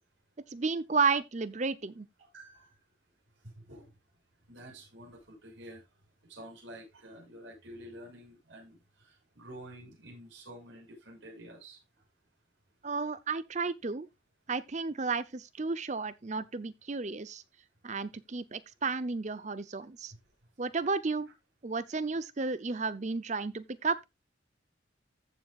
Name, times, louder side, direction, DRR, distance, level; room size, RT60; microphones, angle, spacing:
voice 1, 0.5-2.1 12.8-14.1 14.5-17.4 17.8-20.1 20.6-21.3 21.6-24.0, right 4 dB, 35° right, 0.6 m, -32 dB
voice 2, 2.3-2.8 3.4-3.9 4.5-5.8 6.3-11.8, right 1 dB, 80° right, 6.1 m, -49 dB
15.0 x 7.2 x 2.4 m
head